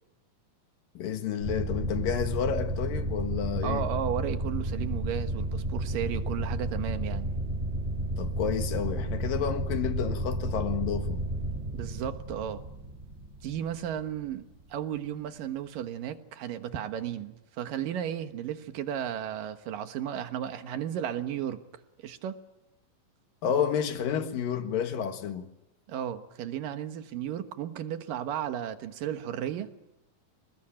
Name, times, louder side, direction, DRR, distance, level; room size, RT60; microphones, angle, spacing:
voice 1, 0.9-3.8 8.2-11.2 23.4-25.5, left 8 dB, 85° left, 3.4 m, -30 dB
sound 1, 1.4-14.6, right 1 dB, 25° right, 2.1 m, -32 dB
voice 2, 3.6-7.3 11.7-12.6 13.4-21.6 22.0-22.4 25.9-29.7, right 10 dB, 80° right, 3.0 m, -34 dB
27.0 x 20.5 x 8.8 m
omnidirectional pair, 3.9 m